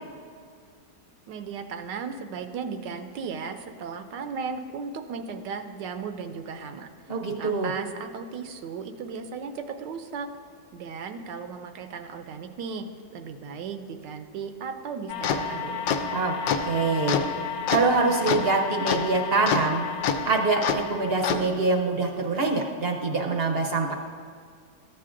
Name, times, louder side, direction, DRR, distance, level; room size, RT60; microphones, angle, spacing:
voice 1, 1.3-6.9 7.4-10.3 10.7-12.8 13.1-15.8, right 5 dB, 80° right, 7 dB, 1.2 m, -36 dB
voice 2, 7.1-7.7 16.1-16.3 16.6-17.2 17.7-19.8 20.2-23.9, right 3 dB, 55° right, 2 dB, 0.7 m, -24 dB
sound 1, 15.1-21.4, left 6 dB, 80° left, 1.2 m, -28 dB
14.0 x 8.4 x 2.5 m, 2.1 s
omnidirectional pair, 1.9 m